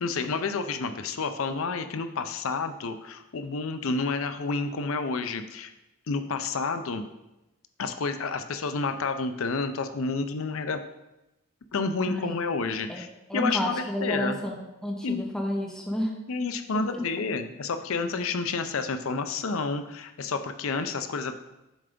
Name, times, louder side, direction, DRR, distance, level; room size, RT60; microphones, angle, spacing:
voice 1, 0.0-5.7 6.1-7.0 7.8-10.8 11.7-13.1 13.3-13.7 14.0-14.4 15.0-15.2 16.3-21.3, left 4 dB, 75° left, 9 dB, 0.5 m, -30 dB
voice 2, 12.1-12.4 12.9-16.1 16.7-17.0, equal, ahead, 0 dB, 0.7 m, -31 dB
7.3 x 3.4 x 5.1 m, 0.96 s
head